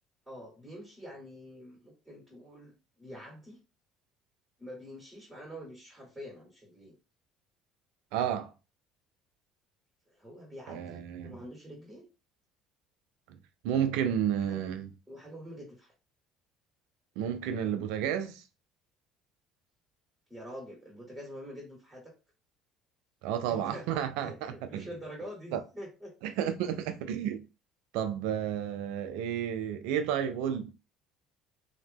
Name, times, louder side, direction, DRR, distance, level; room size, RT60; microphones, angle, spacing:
voice 1, 0.2-3.6 4.6-7.0 10.1-12.0 13.6-14.7 15.1-15.9 20.3-22.1 23.5-23.9 24.2-26.1, equal, 5° right, 1.7 m, -46 dB
voice 2, 8.1-8.5 10.7-11.3 13.3-13.4 13.6-14.9 17.2-18.4 23.2-24.9 25.5-25.6 26.2-27.4 27.9-30.7, right 9 dB, 80° right, 0.4 m, -31 dB
2.8 x 2.1 x 3.4 m
supercardioid pair, 75°, 0 cm